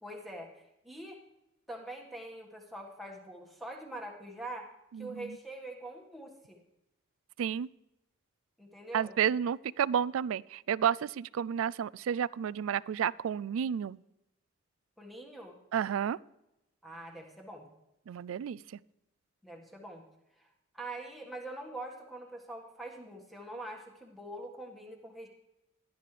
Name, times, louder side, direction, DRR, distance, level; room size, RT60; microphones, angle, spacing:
voice 1, 0.0-1.2 1.7-4.7 5.0-6.6 8.6-9.2 15.0-15.6 16.8-17.7 19.4-20.0 20.4-20.5 20.7-25.3, right 1 dB, ahead, 0 dB, 1.6 m, -44 dB
voice 2, 4.9-5.4 7.4-7.7 8.9-14.0 15.7-16.2 18.1-18.8, right 8 dB, 80° right, 21 dB, 0.3 m, -31 dB
18.0 x 11.5 x 3.3 m, 0.92 s
head